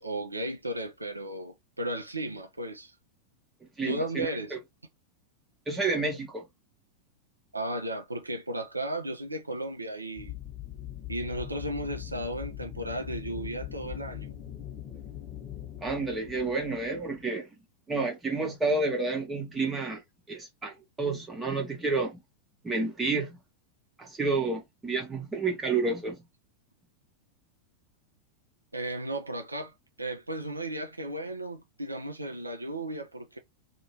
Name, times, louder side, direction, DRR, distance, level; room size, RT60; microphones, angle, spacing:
voice 1, 0.0-2.9 3.8-4.6 7.5-10.3 11.1-14.3 28.7-33.4, right 1 dB, 80° right, 0.6 m, -35 dB
voice 2, 3.8-4.6 5.7-6.4 15.8-17.5 17.9-20.0 20.3-22.2 22.6-23.4 24.0-26.2, right 3 dB, 15° right, 1.2 m, -30 dB
sound 1, 10.2-17.2, left 12 dB, 25° left, 1.2 m, -41 dB
2.9 x 2.7 x 2.8 m
figure-of-eight pair, 90°, 0 cm